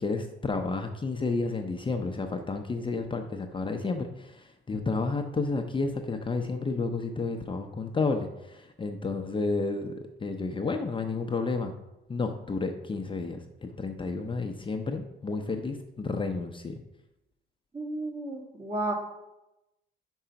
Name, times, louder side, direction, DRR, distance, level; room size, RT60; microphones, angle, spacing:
voice 1, 0.0-11.7 12.1-16.8, left 3 dB, 25° left, 4 dB, 0.6 m, -31 dB
voice 2, 17.7-18.9, right 2 dB, 30° right, 1 dB, 1.8 m, -32 dB
5.4 x 5.0 x 5.7 m, 0.93 s
cardioid pair, 90°, 20 cm